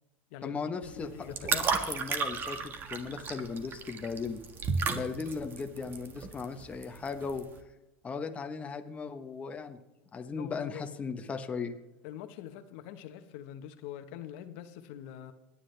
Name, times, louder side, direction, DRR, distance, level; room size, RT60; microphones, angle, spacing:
voice 1, 0.4-4.4 4.9-7.5 8.0-9.8 10.1-11.8, left 5 dB, 20° left, 6 dB, 1.1 m, -37 dB
sound 1, 0.8-7.6, right 5 dB, 30° right, 1.6 m, -34 dB
voice 2, 1.0-1.7 10.4-10.8 12.0-15.3, left 11 dB, 65° left, 8 dB, 1.2 m, -44 dB
27.5 x 10.0 x 3.4 m, 1.0 s
supercardioid pair, 120°, 7 cm